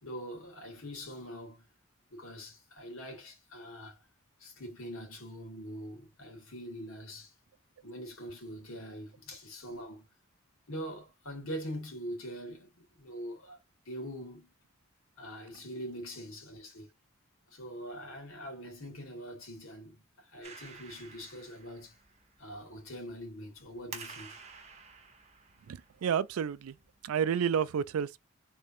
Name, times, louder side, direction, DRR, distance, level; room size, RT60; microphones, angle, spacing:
voice 1, 0.0-1.7 2.1-4.0 4.4-7.3 7.8-10.1 10.7-13.6 13.9-14.5 15.2-16.9 17.5-22.0 22.4-24.4, equal, 80° left, 2.0 m, -43 dB
Clapping, 20.4-27.1, right 5 dB, 30° right, 0.9 m, -51 dB
voice 2, 25.7-26.8 27.0-28.2, right 8 dB, 90° right, 0.4 m, -30 dB
3.6 x 3.3 x 2.6 m
head